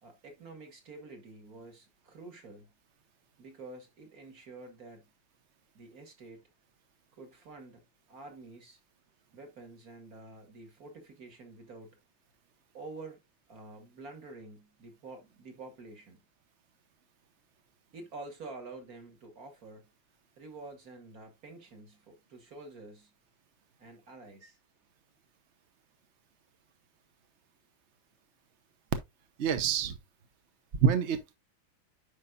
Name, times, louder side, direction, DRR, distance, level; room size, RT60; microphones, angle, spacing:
voice 1, 0.0-2.7 3.4-5.1 5.7-6.5 7.2-8.8 9.3-12.0 12.7-13.2 13.5-16.2 17.9-19.9 20.4-23.1 23.8-24.6, right 3 dB, 45° right, 2.2 m, -48 dB
voice 2, 29.4-30.0 30.7-31.3, right 7 dB, 60° right, 0.7 m, -27 dB
9.8 x 5.4 x 2.5 m
omnidirectional pair, 2.4 m